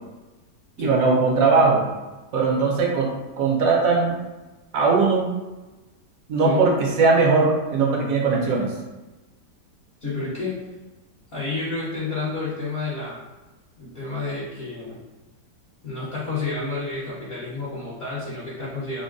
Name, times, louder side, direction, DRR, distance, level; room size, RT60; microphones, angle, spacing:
voice 1, 0.8-1.8 2.3-3.1 3.4-4.2 4.7-5.3 6.3-8.7, right 4 dB, 60° right, -2 dB, 1.1 m, -19 dB
voice 2, 10.0-10.6 11.3-13.2 13.8-15.0 15.8-19.0, left 3 dB, 45° left, -9 dB, 1.1 m, -30 dB
3.7 x 2.1 x 3.7 m, 1.2 s
omnidirectional pair, 1.8 m